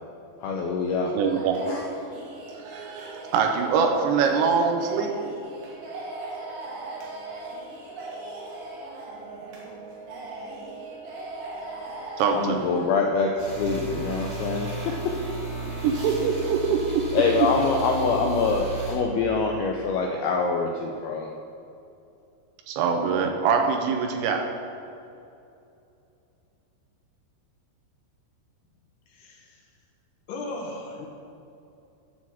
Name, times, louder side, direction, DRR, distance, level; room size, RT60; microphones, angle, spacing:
voice 1, 0.4-1.2 1.7-1.8 12.3-15.1 17.1-21.3, left 4 dB, 90° left, 1 dB, 2.2 m, -25 dB
voice 2, 1.1-1.6 2.6-5.1 12.2-12.7 15.8-17.1 17.4-17.5 22.7-24.4, right 6 dB, 85° right, 3 dB, 2.9 m, -24 dB
sound 1, 1.2-12.9, right 2 dB, 65° right, 3.2 m, -39 dB
sound 2, 13.4-18.9, right 4 dB, 40° right, 1.3 m, -34 dB
voice 3, 29.1-29.6 30.3-31.1, left 2 dB, 70° left, -1 dB, 2.9 m, -36 dB
11.5 x 4.2 x 7.3 m, 2.7 s
omnidirectional pair, 5.1 m